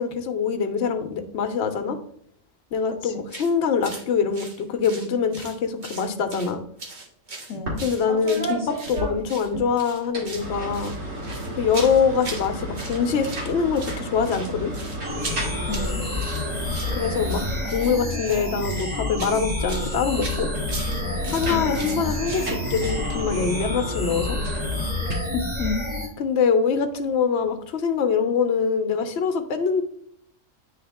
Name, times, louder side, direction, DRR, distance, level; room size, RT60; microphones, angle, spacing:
voice 1, 0.0-2.0 2.7-6.6 7.8-10.9 11.6-14.7 16.9-17.4 17.7-20.5 21.3-24.4 26.2-29.8, left 6 dB, 60° left, 7 dB, 1.0 m, -24 dB
sound 1, 3.3-3.5 3.8-4.0 4.3-5.6 5.8-6.5 6.8-9.0 9.3-9.5 9.8-10.5 10.7-12.5 12.7-13.5 13.7-23.0, right 3 dB, 40° right, 1.1 m, -38 dB
voice 2, 7.5-7.8 15.7-16.1 21.5-22.1 25.3-25.9, left 4 dB, 85° left, 6 dB, 1.1 m, -31 dB
sound 2, 7.7-9.6 10.0-18.1 19.8-25.1, right 1 dB, 80° right, 2.5 m, -33 dB
sound 3, 15.0-26.1, left 2 dB, 10° right, 1.3 m, -29 dB
9.4 x 3.4 x 3.5 m, 0.65 s
omnidirectional pair, 1.3 m